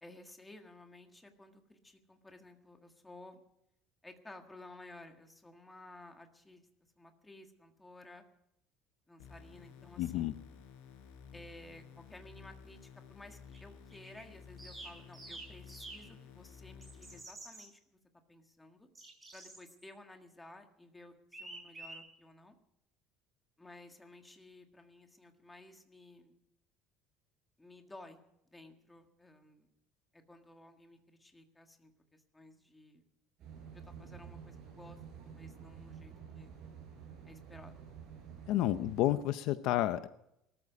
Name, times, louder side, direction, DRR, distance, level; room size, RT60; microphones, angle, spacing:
voice 1, 0.0-3.4 4.0-6.7 7.0-8.2 9.1-10.3 11.3-18.0 18.3-18.9 19.3-22.6 23.6-26.3 27.6-28.2 28.5-29.7 30.1-33.0 33.7-36.5 37.2-37.8, left 2 dB, 5° left, 4 dB, 1.7 m, -55 dB
sound 1, 9.2-17.2, left 6 dB, 85° left, 4.9 m, -54 dB
voice 2, 10.0-10.3 38.5-40.1, left 14 dB, 55° left, 12 dB, 0.7 m, -30 dB
sound 2, 13.5-13.6 13.9-14.2 14.6-16.0 16.8-17.6 18.9-19.9 21.3-22.0, right 2 dB, 10° right, 5.0 m, -48 dB
sound 3, 33.4-39.1, right 7 dB, 40° right, 6.8 m, -50 dB
19.5 x 13.5 x 5.1 m, 0.79 s
cardioid pair, 170°, 0 cm